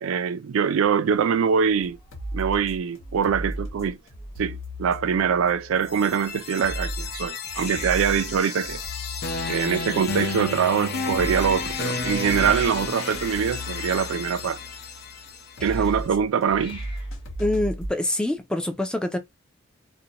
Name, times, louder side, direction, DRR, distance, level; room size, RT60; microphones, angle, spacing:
voice 1, 0.0-2.0 2.3-4.0 4.4-8.8 9.5-14.6 15.6-16.8, right 7 dB, 70° right, 0.3 m, -23 dB
Hiss, 1.1-18.4, left 2 dB, 25° left, 1.0 m, -49 dB
sound 1, 1.7-17.9, equal, 75° left, 1.0 m, -36 dB
sound 2, 5.8-15.7, left 4 dB, 50° left, 0.6 m, -32 dB
voice 2, 17.4-19.2, left 1 dB, 5° left, 0.3 m, -26 dB
2.5 x 2.1 x 2.8 m
head